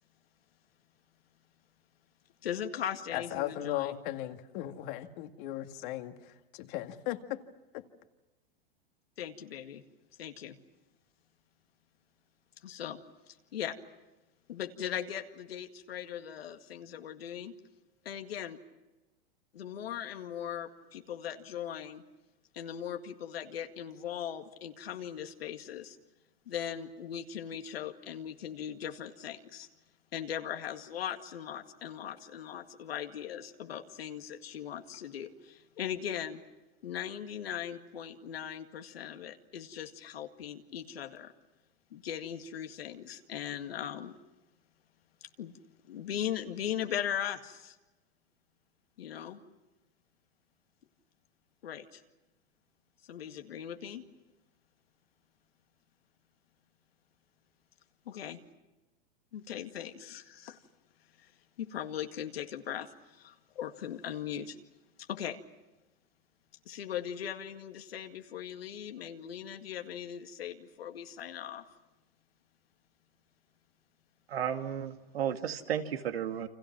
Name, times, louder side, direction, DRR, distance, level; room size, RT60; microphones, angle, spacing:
voice 1, 2.4-4.0 9.2-9.8 10.2-10.6 12.6-13.0 13.3-13.8 14.5-17.5 18.0-18.6 19.5-22.0 22.5-26.0 26.5-29.7 30.1-36.4 36.8-41.3 41.9-44.1 45.4-45.5 45.9-47.8 49.0-49.4 51.6-52.0 53.1-54.0 58.1-58.4 59.3-60.6 61.2-61.3 61.6-64.6 65.0-65.4 66.7-71.6, left 9 dB, 85° left, 6 dB, 2.1 m, -39 dB
voice 2, 3.1-7.4 7.7-7.8, left 14 dB, 55° left, 7 dB, 2.0 m, -37 dB
voice 3, 74.3-76.5, right 9 dB, 85° right, 6 dB, 2.2 m, -33 dB
29.5 x 26.0 x 6.0 m, 1.1 s
hypercardioid pair, 120°, 30 cm